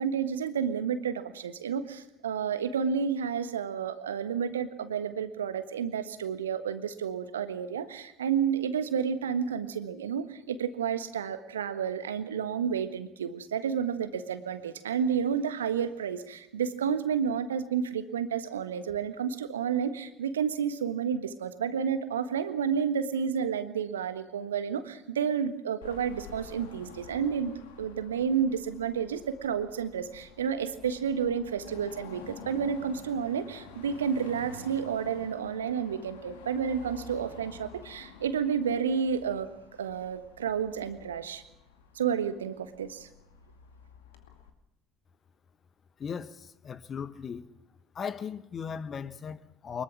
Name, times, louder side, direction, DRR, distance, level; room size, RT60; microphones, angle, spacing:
voice 1, 0.0-39.5 39.8-41.4 41.9-43.1, right 7 dB, 80° right, 1.4 m, -31 dB
Car passing by / Traffic noise roadway noise / Engine, 25.8-44.5, left 5 dB, 70° left, 2.3 m, -50 dB
voice 2, 46.0-47.5 47.9-49.8, left 6 dB, 35° left, 1.3 m, -37 dB
23.5 x 21.5 x 6.2 m
figure-of-eight pair, 60°, 0 cm